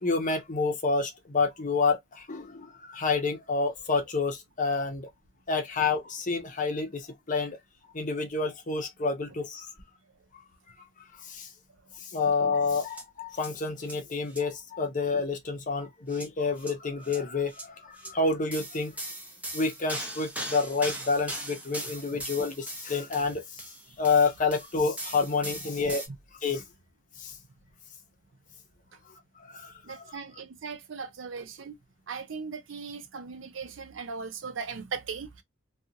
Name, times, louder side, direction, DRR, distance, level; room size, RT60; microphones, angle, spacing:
voice 1, 0.0-5.1 5.5-7.6 7.9-9.6 11.3-11.5 12.1-18.9 19.5-23.4 24.0-26.0 26.4-26.6 27.2-27.3 29.5-30.2, left 4 dB, 40° left, 0.8 m, -28 dB
sound 1, 12.9-13.0 13.4-13.5 13.8-14.0 14.3-14.4 16.1-16.3 16.6-16.7 17.0-17.2 17.5-17.7 18.0-18.1 18.5-26.1, right 1 dB, 10° right, 0.7 m, -39 dB
voice 2, 29.8-31.8 32.1-35.4, right 5 dB, 80° right, 0.6 m, -38 dB
2.5 x 2.4 x 2.7 m
head